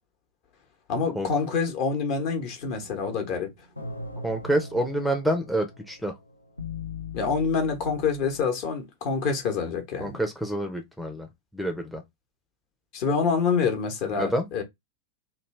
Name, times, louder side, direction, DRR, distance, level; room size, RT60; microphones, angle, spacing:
voice 1, 0.9-3.5 7.1-10.2 12.9-14.6, left 5 dB, 45° left, 1.1 m, -26 dB
sound 1, 2.6-8.5, left 4 dB, 80° left, 0.5 m, -40 dB
voice 2, 4.2-6.1 10.0-11.3 11.5-12.0 14.2-14.5, right 1 dB, ahead, 0.6 m, -27 dB
3.1 x 2.3 x 3.2 m
figure-of-eight pair, 90°, 0 cm